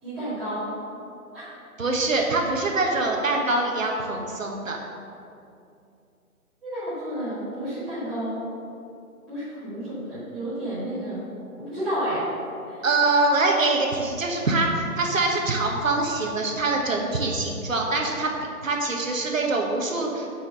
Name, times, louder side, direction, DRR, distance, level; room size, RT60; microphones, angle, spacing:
voice 1, 0.0-0.7 1.3-1.6 6.6-8.4 9.3-11.2 11.6-12.3 12.7-12.8, right 1 dB, ahead, -20 dB, 2.0 m, -31 dB
voice 2, 1.8-4.8 12.8-18.3 18.6-20.3, right 2 dB, 65° right, 0 dB, 1.2 m, -24 dB
6.7 x 5.6 x 6.4 m, 2.6 s
hypercardioid pair, 180°, 44 cm